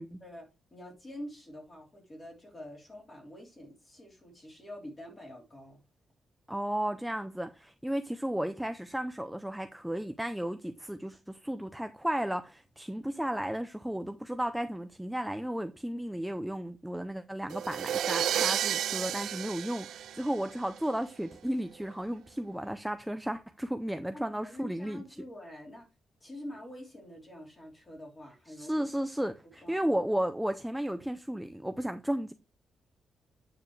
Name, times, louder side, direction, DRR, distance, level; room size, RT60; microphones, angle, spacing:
voice 1, 0.2-5.8 24.1-25.9 26.2-28.9 29.4-29.9, left 1 dB, 20° left, 3.3 m, -46 dB
voice 2, 6.5-25.0 28.6-32.3, right 1 dB, 5° right, 0.4 m, -34 dB
sound 1, 17.5-20.8, right 10 dB, 80° right, 0.3 m, -31 dB
8.8 x 6.8 x 3.1 m
wide cardioid pair, 175°, 0 cm